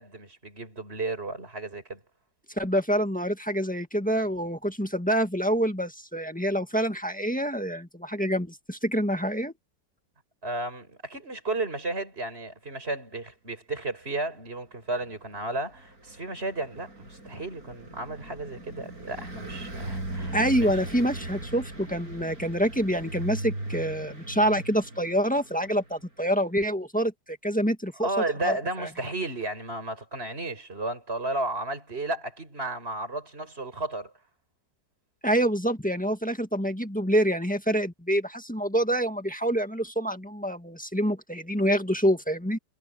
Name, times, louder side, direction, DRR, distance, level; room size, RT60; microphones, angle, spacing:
voice 1, 0.0-2.0 10.4-20.8 28.0-34.1, right 2 dB, 35° right, 6.4 m, -33 dB
voice 2, 2.6-9.5 20.3-28.1 28.4-28.5 28.8-28.9 35.2-42.6, equal, 5° left, 1.6 m, -26 dB
Car passing by, 15.0-26.1, right 2 dB, 55° right, 8.0 m, -39 dB
omnidirectional pair, 1.8 m